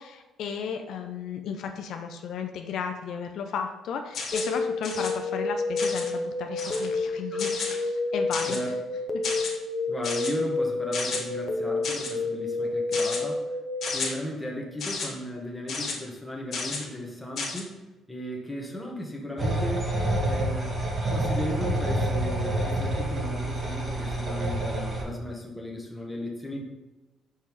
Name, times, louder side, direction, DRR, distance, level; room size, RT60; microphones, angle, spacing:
voice 1, 0.0-8.7, left 6 dB, 70° left, 5 dB, 0.5 m, -34 dB
sound 1, 4.1-4.6 4.8-5.1 5.8-6.1 6.6-6.9 7.4-7.8 8.3-8.7 9.2-9.5 10.0-10.3 10.9-11.2 11.8-12.1 12.9-13.2 13.8-14.1 14.8-15.1 15.7-15.9 16.5-16.8 17.4-17.6, left 4 dB, 55° left, 1.3 m, -32 dB
sound 2, 4.3-13.9, left 3 dB, 40° left, 0.8 m, -29 dB
voice 2, 9.9-13.4 13.9-17.8 18.1-20.8 21.1-26.6, left 1 dB, 5° left, -1 dB, 1.3 m, -36 dB
sound 3, 19.4-25.0, right 1 dB, 35° right, 1.7 m, -28 dB
5.5 x 5.4 x 3.2 m, 1.1 s
cardioid pair, 105°, 0 cm